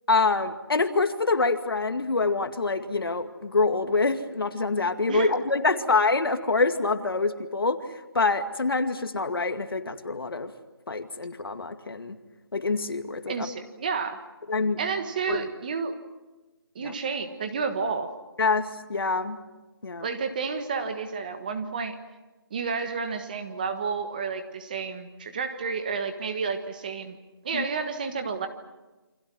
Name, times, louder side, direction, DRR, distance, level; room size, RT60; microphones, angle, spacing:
voice 1, 0.1-7.8 8.1-10.5 10.9-12.2 12.5-13.5 14.5-14.8 15.3-15.4 16.8-16.9 18.4-19.4 19.8-20.1 27.5-27.7, left 3 dB, 70° left, 7 dB, 2.3 m, -26 dB
voice 2, 13.3-14.2 14.8-16.0 16.7-18.1 20.0-22.0 22.5-27.2 27.4-28.5, right 5 dB, 20° right, 7 dB, 1.5 m, -30 dB
28.5 x 25.5 x 6.3 m, 1.1 s
figure-of-eight pair, 175°, 13 cm